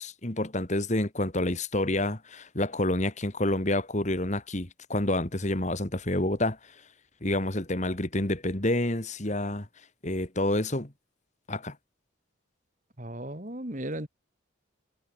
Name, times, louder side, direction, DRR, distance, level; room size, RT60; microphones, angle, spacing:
voice 1, 0.0-6.6 7.2-9.7 10.0-10.9 11.5-11.8, left 1 dB, 35° left, 2.1 m, -28 dB
voice 2, 13.0-14.1, right 1 dB, 40° right, 2.5 m, -35 dB
head